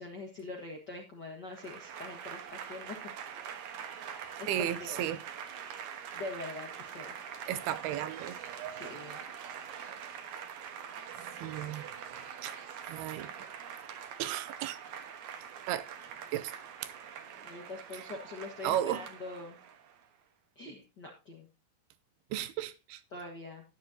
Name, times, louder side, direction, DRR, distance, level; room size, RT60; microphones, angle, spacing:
voice 1, 0.0-3.0 4.4-5.0 6.1-7.1 8.7-9.2 17.4-19.6 20.5-21.5 23.1-23.6, left 2 dB, 50° left, 1.2 m, -43 dB
Applause / Crowd, 1.5-20.0, right 8 dB, 65° right, 2.1 m, -44 dB
voice 2, 4.5-5.2 7.5-8.9 11.4-11.9 12.4-12.5 12.9-13.5 14.2-14.8 15.7-15.9 16.3-16.5 17.9-18.0 18.6-19.1 22.3-23.0, right 12 dB, 80° right, 2.6 m, -34 dB
12.5 x 10.5 x 2.8 m
omnidirectional pair, 4.6 m